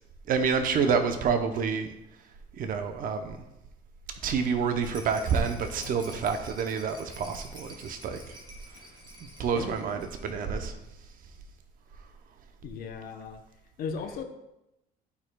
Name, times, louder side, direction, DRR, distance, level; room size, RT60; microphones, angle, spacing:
voice 1, 0.3-1.9 2.6-3.4 4.2-8.3 9.4-10.7, right 6 dB, 55° right, 7 dB, 0.7 m, -28 dB
sound 1, 4.1-9.7, left 4 dB, 85° left, 2.0 m, -49 dB
Rattle, 4.8-10.5 10.8-10.9 11.1-11.2, equal, 25° right, 1.7 m, -49 dB
voice 2, 12.6-13.4 13.8-14.2, left 5 dB, 60° left, 4 dB, 0.8 m, -36 dB
11.5 x 4.6 x 2.3 m, 0.89 s
cardioid pair, 110°, 17 cm